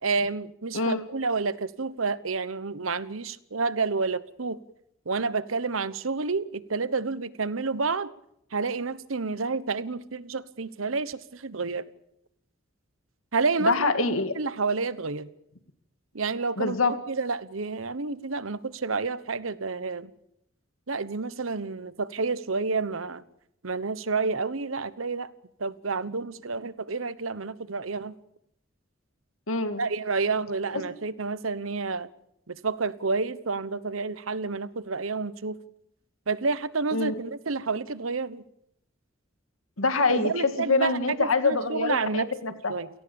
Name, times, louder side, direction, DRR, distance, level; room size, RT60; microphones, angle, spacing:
voice 1, 0.0-4.6 5.1-8.1 8.5-11.8 13.3-15.3 16.1-20.1 20.9-23.2 23.6-25.3 25.6-28.1 29.8-32.1 32.5-35.5 36.3-38.4 40.1-42.3 42.7-42.9, right 4 dB, 85° right, 16 dB, 1.1 m, -29 dB
voice 2, 13.6-14.3 16.6-17.0 29.5-29.8 30.7-30.8 36.9-37.2 39.8-42.7, left 3 dB, 90° left, 9 dB, 2.2 m, -25 dB
29.0 x 18.0 x 7.1 m, 0.78 s
head